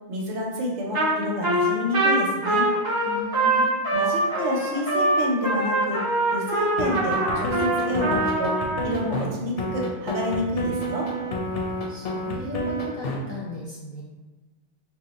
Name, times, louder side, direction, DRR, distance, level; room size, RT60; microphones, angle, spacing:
voice 1, 0.1-2.6 3.9-6.0 6.3-8.5 8.8-11.1, left 1 dB, 85° right, -2 dB, 1.0 m, -28 dB
Trumpet, 0.9-1.2 1.4-8.8, right 1 dB, 25° right, 0.5 m, -23 dB
voice 2, 3.0-3.7 11.9-14.0, left 1 dB, 30° left, -8 dB, 0.6 m, -36 dB
sound 1, 6.8-9.3 9.6-13.2, equal, 65° left, 0.7 m, -29 dB
2.6 x 2.1 x 3.9 m, 1.2 s
omnidirectional pair, 1.2 m